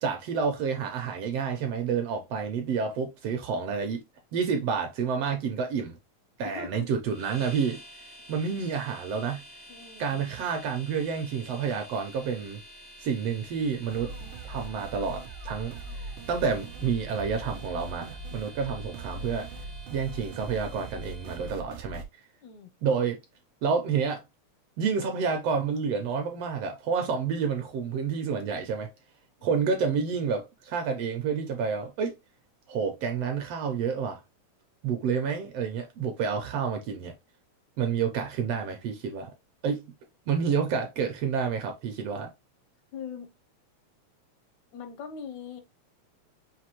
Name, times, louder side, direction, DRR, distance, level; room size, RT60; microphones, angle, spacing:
voice 1, 0.0-4.0 4.3-6.0 6.4-7.8 8.3-9.4 10.0-12.6 13.0-14.1 14.4-19.5 19.9-22.0 22.8-23.2 23.6-24.2 24.8-28.9 29.4-32.2 32.7-34.2 34.8-37.1 37.8-39.3 39.6-39.8 40.3-42.3, right 6 dB, 75° right, 1.5 m, -29 dB
voice 2, 6.4-6.9 9.7-10.3 22.4-22.7 29.4-29.6 42.9-43.3 44.7-45.6, left 6 dB, 80° left, 2.2 m, -41 dB
sound 1, 7.1-21.5, equal, 65° left, 0.4 m, -49 dB
sound 2, 13.9-22.0, right 2 dB, 90° right, 1.1 m, -40 dB
5.9 x 2.6 x 2.9 m
omnidirectional pair, 3.3 m